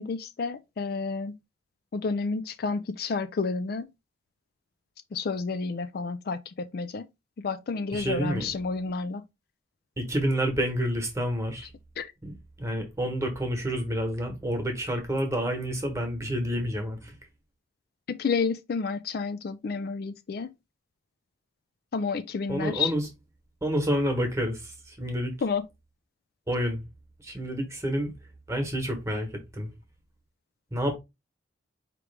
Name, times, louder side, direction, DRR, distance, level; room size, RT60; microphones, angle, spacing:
voice 1, 0.0-1.3 1.9-3.9 5.1-6.4 6.7-7.1 7.4-9.2 12.0-12.1 18.1-20.5 21.9-22.9 25.4-25.6, left 4 dB, 50° left, 0.4 m, -30 dB
voice 2, 7.9-8.5 10.0-11.7 12.2-17.1 22.5-23.1 23.6-25.3 26.5-26.8 27.2-28.1 28.5-29.7 30.7-31.0, equal, 15° right, 1.2 m, -29 dB
5.0 x 3.0 x 3.3 m
head